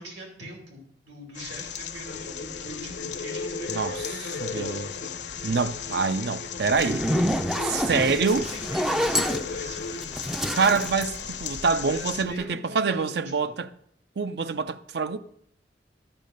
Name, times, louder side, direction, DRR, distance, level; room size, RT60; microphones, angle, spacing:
voice 1, 0.0-4.7 8.0-10.2 11.9-13.6, right 1 dB, 90° right, 3.0 m, -42 dB
sound 1, 1.3-12.2, left 9 dB, 80° left, 1.0 m, -37 dB
sound 2, 2.1-10.1, left 3 dB, 60° left, 0.6 m, -37 dB
voice 2, 4.4-4.9 5.4-7.2 7.6-8.5 10.5-13.7 14.2-15.2, right 4 dB, 65° right, 0.5 m, -26 dB
Zipper (clothing), 6.7-12.0, equal, 5° right, 0.4 m, -28 dB
12.0 x 6.5 x 5.3 m
head